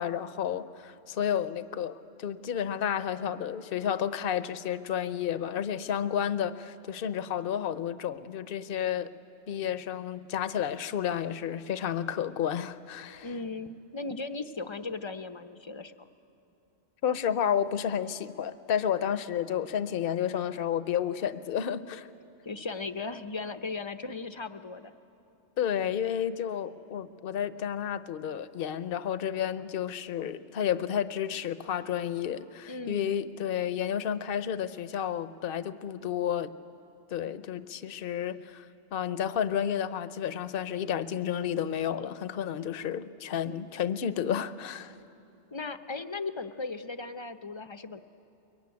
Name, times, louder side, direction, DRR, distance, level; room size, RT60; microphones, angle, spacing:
voice 1, 0.0-9.1 9.5-13.3 17.0-22.1 25.6-36.5 37.1-38.7 38.9-45.0, left 9 dB, 55° left, 13 dB, 0.9 m, -31 dB
voice 2, 13.2-16.1 22.4-24.9 32.7-33.1 45.5-48.0, left 3 dB, 30° left, 10 dB, 0.6 m, -37 dB
23.0 x 23.0 x 9.5 m, 2.8 s
omnidirectional pair, 1.2 m